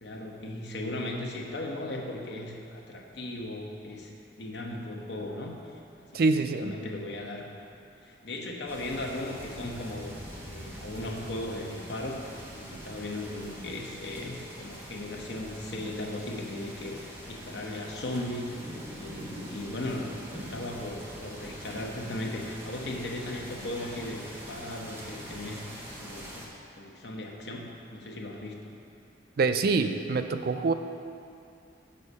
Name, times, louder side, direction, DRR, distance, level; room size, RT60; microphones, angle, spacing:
voice 1, 0.0-4.1 4.4-7.5 8.0-10.1 10.4-26.4 26.8-28.7, left 1 dB, 65° left, 0 dB, 0.9 m, -37 dB
voice 2, 6.1-6.7 29.4-30.7, right 3 dB, 50° right, 8 dB, 0.4 m, -25 dB
sound 1, 8.7-26.5, equal, 15° right, 1.0 m, -43 dB
7.0 x 6.6 x 5.3 m, 2.5 s
head